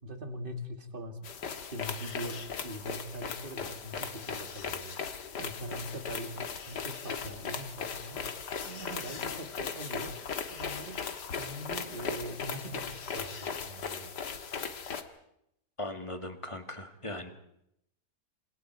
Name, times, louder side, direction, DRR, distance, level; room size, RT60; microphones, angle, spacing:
voice 1, 0.0-1.2 1.4-10.1 10.5-14.1, right 1 dB, 30° right, 6 dB, 2.4 m, -42 dB
sound 1, 1.2-15.0, left 6 dB, 80° left, 2.1 m, -38 dB
voice 2, 15.8-17.3, left 1 dB, 20° left, 6 dB, 2.0 m, -39 dB
27.5 x 27.5 x 4.7 m, 0.78 s
omnidirectional pair, 1.8 m